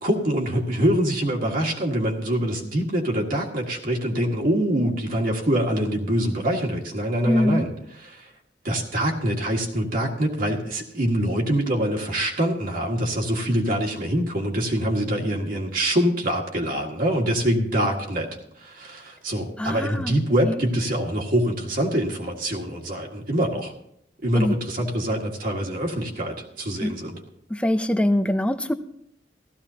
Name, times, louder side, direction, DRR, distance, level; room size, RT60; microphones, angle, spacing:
voice 1, 0.0-7.7 8.0-8.3 8.6-18.3 18.6-23.7 24.2-27.2, right 1 dB, 50° right, 0 dB, 1.8 m, -24 dB
voice 2, 7.3-7.7 19.6-20.2 20.4-20.6 24.3-24.6 26.8-26.9 27.5-28.7, left 1 dB, 5° left, 10 dB, 0.5 m, -23 dB
16.0 x 14.0 x 2.8 m, 0.74 s
head